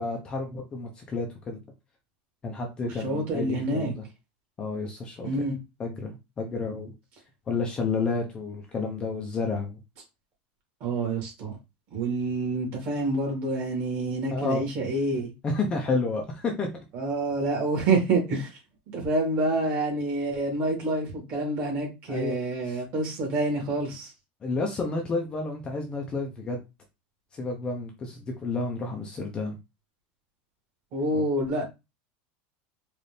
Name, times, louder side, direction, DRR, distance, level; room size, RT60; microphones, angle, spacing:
voice 1, 0.0-1.6 2.4-4.0 4.6-5.3 5.8-6.9 7.5-9.8 14.3-14.7 15.4-16.7 22.1-22.4 22.7-22.8 24.4-26.6 27.3-29.6 31.1-31.2, left 3 dB, 15° left, 0.6 m, -30 dB
voice 2, 2.8-3.9 5.2-5.6 10.8-11.5 11.9-15.3 16.9-18.5 18.9-24.1 30.9-31.6, right 2 dB, 40° right, 2.0 m, -27 dB
4.1 x 2.6 x 3.3 m
supercardioid pair, 175°, 5 cm